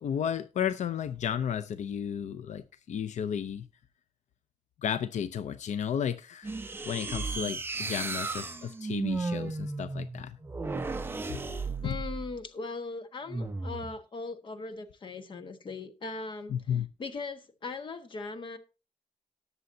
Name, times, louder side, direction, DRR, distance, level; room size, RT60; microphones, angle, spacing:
voice 1, 0.0-3.7 4.8-6.6 6.9-10.4 11.3-11.4 11.8-12.0 16.5-16.9, left 8 dB, 80° left, 0.6 m, -33 dB
sound 1, 6.4-12.4 13.3-13.9, right 3 dB, 20° right, 0.7 m, -34 dB
voice 2, 11.8-16.5 17.0-18.6, left 3 dB, 45° left, 1.4 m, -39 dB
19.0 x 6.9 x 2.7 m
wide cardioid pair, 160°, 12 cm